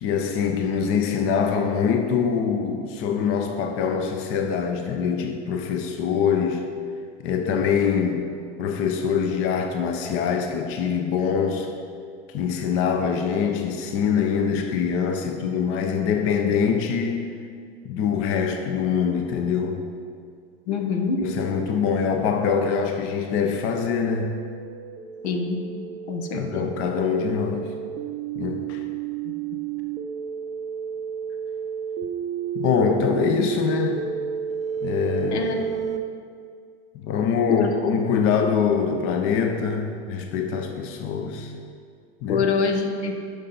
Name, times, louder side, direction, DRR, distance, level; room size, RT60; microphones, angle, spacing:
voice 1, 0.0-6.7 7.2-8.3 8.6-11.7 12.3-17.3 17.8-19.9 21.2-24.4 26.3-27.7 28.4-28.8 32.5-34.0 34.8-35.5 36.9-41.5 42.2-42.4, left 6 dB, 40° left, 5 dB, 0.8 m, -24 dB
voice 2, 20.7-21.2 25.2-25.6 26.1-26.6 35.3-35.7 37.5-37.7 42.3-43.1, left 5 dB, 80° left, 4 dB, 1.3 m, -25 dB
sound 1, 22.8-36.0, right 8 dB, 20° right, 0.6 m, -32 dB
11.5 x 5.4 x 4.3 m, 2.2 s
hypercardioid pair, 115°, 33 cm